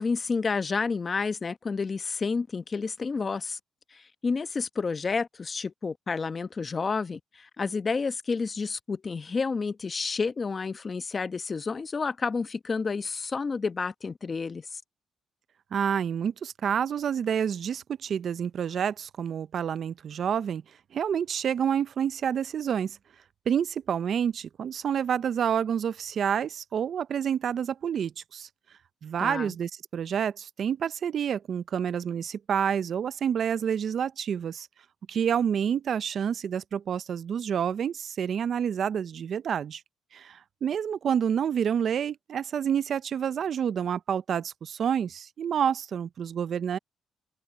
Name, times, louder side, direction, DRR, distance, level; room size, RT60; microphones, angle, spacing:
voice 1, 0.0-3.6 3.9-14.8 29.2-29.5, left 4 dB, 35° left, 1.0 m, -30 dB
voice 2, 15.7-20.6 20.9-23.0 23.5-28.5 29.0-34.7 35.1-39.8 40.1-46.8, right 8 dB, 60° right, 0.5 m, -28 dB
cardioid pair, 90°, 0 cm